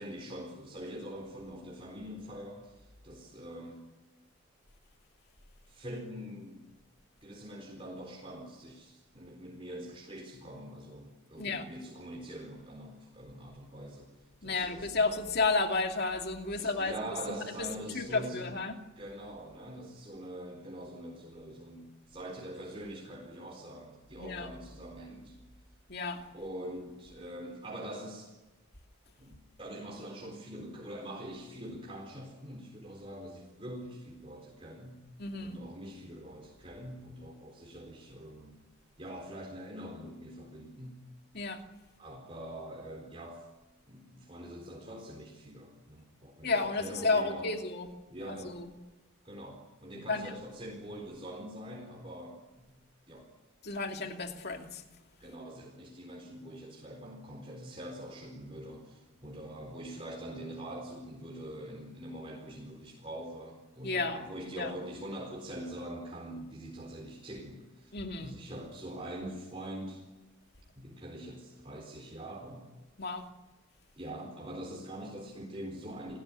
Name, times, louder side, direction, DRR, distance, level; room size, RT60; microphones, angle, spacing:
voice 1, 0.0-3.9 5.7-6.7 7.2-14.1 14.4-15.0 16.5-18.5 19.0-25.4 26.3-28.3 29.2-35.0 35.5-38.6 39.0-41.1 42.0-43.5 43.9-47.5 48.1-48.6 49.2-52.8 53.1-53.3 55.2-70.0 70.8-72.7 74.0-76.2, right 1 dB, 25° right, 0 dB, 4.1 m, -44 dB
voice 2, 14.4-17.0 17.3-17.7 17.9-18.7 24.2-24.5 25.9-26.3 35.2-35.6 41.3-41.6 46.4-47.9 48.3-48.7 50.1-50.3 53.6-54.8 63.8-64.7 67.9-68.4 73.0-73.3, left 3 dB, 50° left, 4 dB, 2.6 m, -32 dB
30.0 x 18.0 x 10.0 m, 1.1 s
head